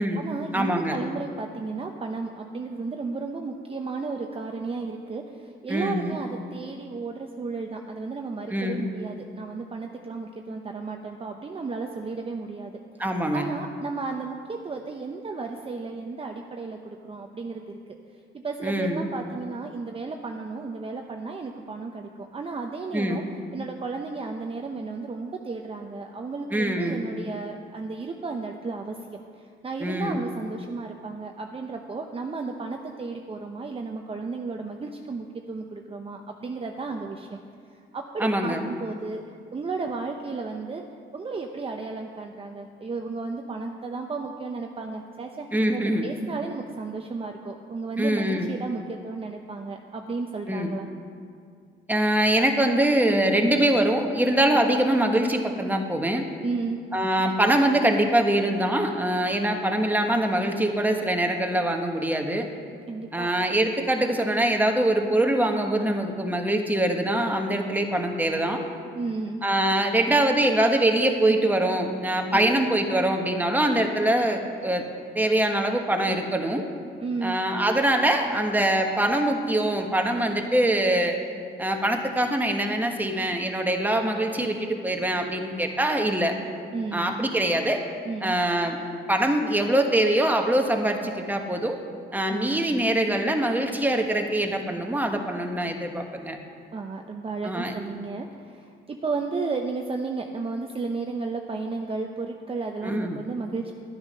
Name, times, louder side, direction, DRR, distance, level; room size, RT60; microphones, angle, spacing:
voice 1, 0.0-12.7 13.3-17.8 18.3-23.2 23.5-37.4 37.9-39.2 39.5-40.8 41.1-50.9 56.4-56.8 62.9-63.3 68.9-69.4 72.3-72.6 77.0-77.4 86.7-87.3 88.1-88.4 92.3-92.9 96.7-103.7, right 4 dB, 30° right, 3 dB, 0.8 m, -33 dB
voice 2, 0.5-1.0 5.7-6.1 8.5-8.9 13.0-13.5 18.6-19.1 22.9-23.3 26.5-27.1 29.8-30.2 38.2-38.6 45.5-46.1 48.0-48.5 50.5-50.7 51.9-56.3 56.9-62.5 63.1-68.6 69.4-74.8 75.1-76.6 77.2-81.2 81.6-86.4 86.9-87.8 88.2-88.8 89.1-91.8 92.1-96.4 97.4-97.7 102.8-103.2, right 1 dB, 10° right, 3 dB, 1.3 m, -23 dB
11.5 x 9.5 x 5.6 m, 2.2 s
cardioid pair, 90°, 20 cm